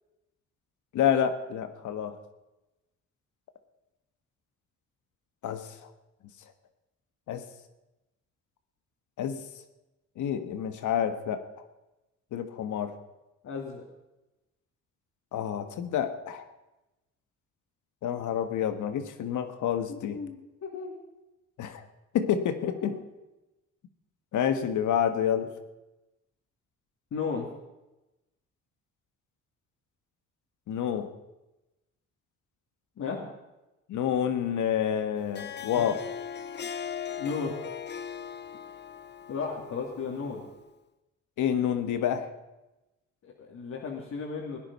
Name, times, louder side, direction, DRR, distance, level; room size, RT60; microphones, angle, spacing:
voice 1, 0.9-2.2 5.4-5.9 7.3-7.4 9.2-9.4 10.2-11.4 12.3-12.9 15.3-16.5 18.0-20.2 21.6-21.8 22.1-23.0 24.3-25.5 30.7-31.1 33.9-36.0 41.4-42.3, left 9 dB, 80° left, 9 dB, 1.5 m, -28 dB
voice 2, 13.4-13.8 19.9-21.0 22.8-22.9 27.1-27.5 33.0-33.2 37.2-37.5 39.3-40.4 43.2-44.6, left 5 dB, 60° left, -3 dB, 2.7 m, -34 dB
Harp, 35.2-40.6, left 8 dB, 35° left, 0.7 m, -39 dB
17.5 x 10.0 x 5.5 m, 1.0 s
cardioid pair, 90°, 30 cm